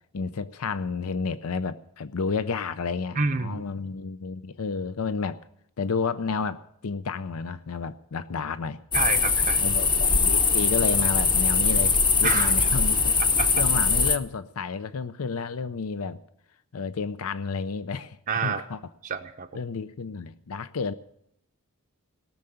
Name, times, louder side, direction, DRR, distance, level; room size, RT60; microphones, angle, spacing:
voice 1, 0.1-5.4 5.8-8.8 9.6-13.2 13.6-16.2 16.7-18.8 19.5-20.9, left 5 dB, 80° left, 14 dB, 0.6 m, -31 dB
voice 2, 3.2-3.6 8.9-9.6 12.2-12.5 13.4-13.6 18.3-18.6 19.0-19.5, right 5 dB, 35° right, 4 dB, 0.6 m, -28 dB
sound 1, 8.9-14.2, left 4 dB, 20° left, 0.7 m, -22 dB
17.5 x 6.8 x 9.9 m, 0.73 s
head